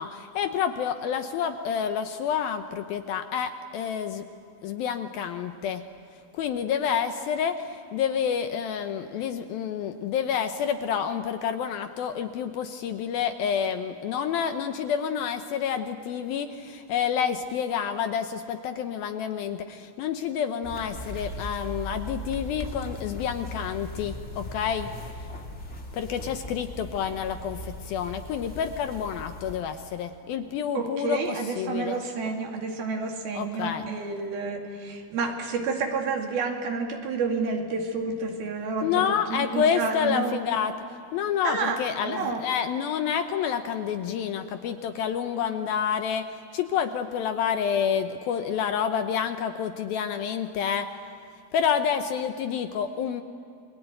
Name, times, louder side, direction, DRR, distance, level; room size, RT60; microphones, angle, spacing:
voice 1, 0.0-4.3 4.6-5.8 6.3-24.9 25.9-32.0 33.3-33.9 38.8-40.7 41.1-50.9 51.5-53.2, left 8 dB, 75° left, 8 dB, 2.4 m, -28 dB
sound 1, 20.6-29.6, left 1 dB, 25° left, 1.8 m, -38 dB
voice 2, 30.7-40.4 41.4-41.8 42.0-42.4, right 4 dB, 65° right, 2 dB, 4.1 m, -30 dB
29.5 x 22.0 x 8.9 m, 2.7 s
omnidirectional pair, 4.9 m